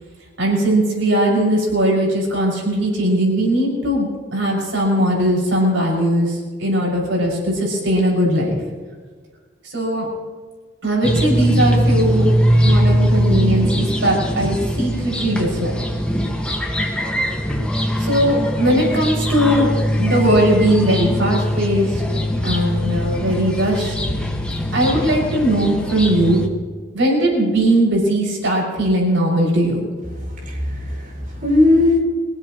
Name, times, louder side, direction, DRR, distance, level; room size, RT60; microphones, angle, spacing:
voice 1, 0.4-8.6 9.7-10.1 10.8-12.3 12.6-15.8 18.0-19.7 20.0-22.0 22.4-23.9 24.7-26.4 26.9-29.8, right 1 dB, 80° right, -3 dB, 6.3 m, -19 dB
sound 1, 11.0-26.5, equal, 5° left, 1.7 m, -21 dB
voice 2, 30.4-32.0, left 2 dB, 45° right, -2 dB, 6.1 m, -18 dB
23.5 x 16.0 x 3.1 m, 1.4 s
head